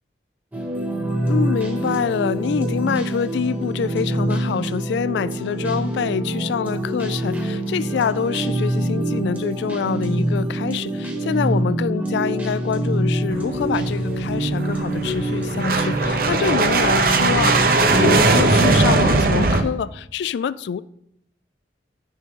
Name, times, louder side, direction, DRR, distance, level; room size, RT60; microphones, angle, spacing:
sound 1, 0.5-19.4, right 1 dB, 10° right, 1.1 m, -25 dB
voice 1, 1.3-20.8, left 7 dB, 75° left, 0.3 m, -26 dB
sound 2, 13.3-19.6, right 3 dB, 50° right, 0.7 m, -19 dB
10.5 x 6.3 x 3.7 m
head